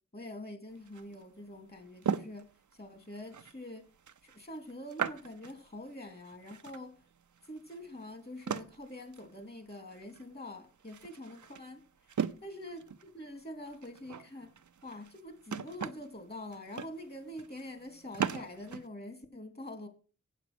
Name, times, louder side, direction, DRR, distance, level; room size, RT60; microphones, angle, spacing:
voice 1, 0.1-2.5 2.8-3.9 4.2-6.9 7.5-11.8 12.4-14.5 14.8-19.9, left 1 dB, 30° left, 7 dB, 3.0 m, -45 dB
sound 1, 0.7-18.9, right 7 dB, 70° right, 0.7 m, -40 dB
8.2 x 8.2 x 6.2 m, 0.36 s
cardioid pair, 50°, 31 cm